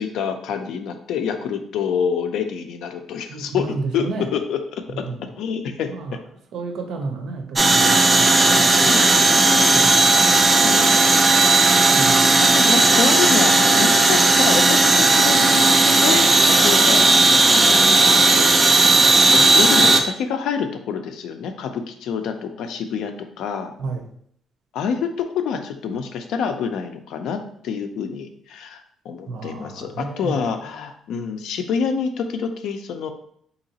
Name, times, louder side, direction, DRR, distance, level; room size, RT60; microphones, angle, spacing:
voice 1, 0.0-5.0 5.4-5.9 8.4-9.7 10.5-10.9 12.4-18.5 19.3-23.7 24.7-33.1, left 6 dB, 75° left, 7 dB, 0.4 m, -27 dB
voice 2, 3.3-4.3 4.9-5.2 5.9-6.2 6.5-8.9 9.7-10.2 11.9-12.4 19.3-19.4 23.8-24.0 29.3-30.4, right 3 dB, 65° right, 4 dB, 0.6 m, -31 dB
sound 1, 7.6-20.0, right 3 dB, 20° right, 0.3 m, -15 dB
3.9 x 2.9 x 2.8 m, 0.67 s
cardioid pair, 155°, 0 cm